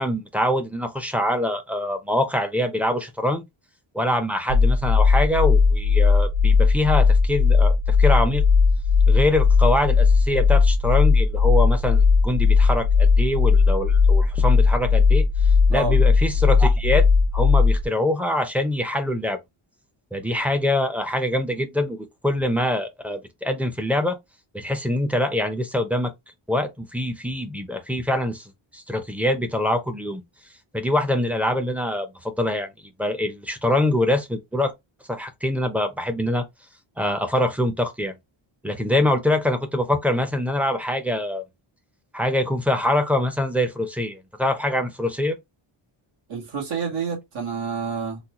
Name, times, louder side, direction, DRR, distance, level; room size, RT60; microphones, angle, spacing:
voice 1, 0.0-3.4 3.9-8.4 9.1-15.3 15.7-17.0 17.3-19.4 20.1-24.2 24.5-26.1 26.5-30.2 30.7-32.7 33.0-34.7 35.1-36.4 37.0-38.2 38.6-41.4 42.1-45.4, left 1 dB, 5° right, 0.5 m, -24 dB
sound 1, 4.5-17.8, left 5 dB, 55° right, 0.7 m, -17 dB
voice 2, 15.7-16.0 46.3-48.2, right 5 dB, 85° right, 1.7 m, -28 dB
4.0 x 2.3 x 2.8 m
wide cardioid pair, 175°, 49 cm